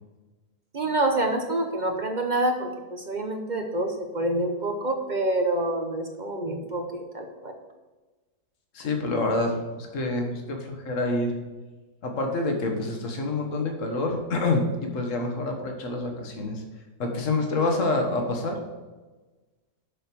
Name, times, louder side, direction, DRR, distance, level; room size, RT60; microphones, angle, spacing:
voice 1, 0.7-7.5, right 1 dB, 45° right, 4 dB, 0.6 m, -27 dB
voice 2, 8.7-11.4 12.0-16.6 17.0-18.6, left 2 dB, 50° left, 2 dB, 1.6 m, -27 dB
6.9 x 6.3 x 6.1 m, 1.2 s
omnidirectional pair, 1.7 m